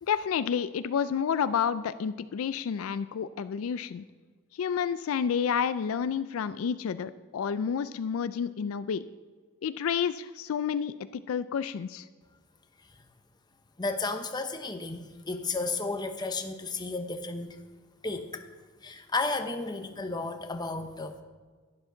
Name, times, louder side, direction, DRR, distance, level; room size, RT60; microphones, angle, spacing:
voice 1, 0.0-4.0 4.5-9.0 9.6-12.1, left 7 dB, 75° left, 14 dB, 0.4 m, -30 dB
voice 2, 13.8-17.6 18.0-18.5 18.8-21.2, left 3 dB, 20° left, 7 dB, 0.8 m, -33 dB
11.5 x 10.5 x 3.9 m, 1.4 s
head